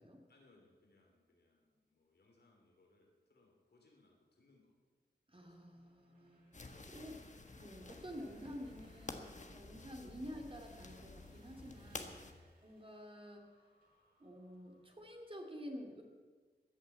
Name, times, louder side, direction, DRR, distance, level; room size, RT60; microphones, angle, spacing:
voice 1, 0.3-4.7 5.4-5.9, left 2 dB, 75° left, -1 dB, 3.2 m, -71 dB
voice 2, 5.3-7.2 7.6-12.3 12.6-13.5 14.2-16.0, equal, 30° right, 2 dB, 2.5 m, -50 dB
sound 1, 5.3-15.1, right 1 dB, 55° right, 6.1 m, -70 dB
sound 2, 6.5-12.3, left 3 dB, 45° left, 1.4 m, -51 dB
14.5 x 10.5 x 8.4 m, 1.4 s
wide cardioid pair, 105°, 17 cm